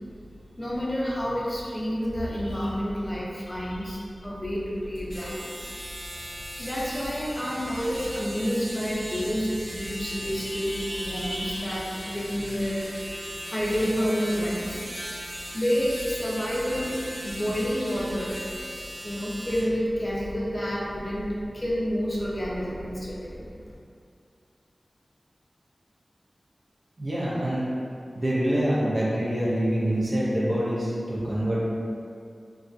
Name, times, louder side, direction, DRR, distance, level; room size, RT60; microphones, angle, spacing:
voice 1, 0.6-13.1 13.4-14.8 15.5-18.4 19.0-23.5, equal, 35° left, -6 dB, 0.5 m, -29 dB
sound 1, 4.9-19.6, equal, 80° right, 0.9 m, -38 dB
voice 2, 27.0-27.7 28.1-31.6, right 1 dB, 55° right, -7 dB, 0.6 m, -25 dB
2.3 x 2.0 x 2.6 m, 2.4 s
wide cardioid pair, 45°, 0 cm